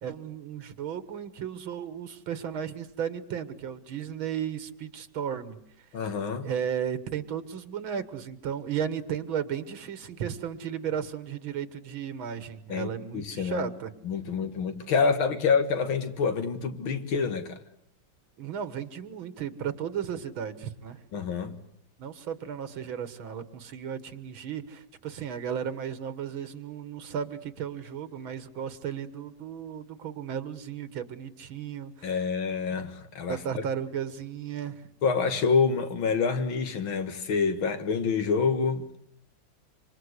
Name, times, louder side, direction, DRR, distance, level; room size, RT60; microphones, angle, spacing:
voice 1, 0.0-5.6 6.4-13.9 18.4-21.0 22.0-32.3 33.3-34.8, right 8 dB, 85° right, 2.3 m, -34 dB
voice 2, 5.9-6.5 12.7-13.7 14.0-17.6 21.1-21.6 32.0-33.6 35.0-39.0, left 5 dB, 90° left, 2.6 m, -27 dB
26.5 x 26.0 x 8.1 m
omnidirectional pair, 2.2 m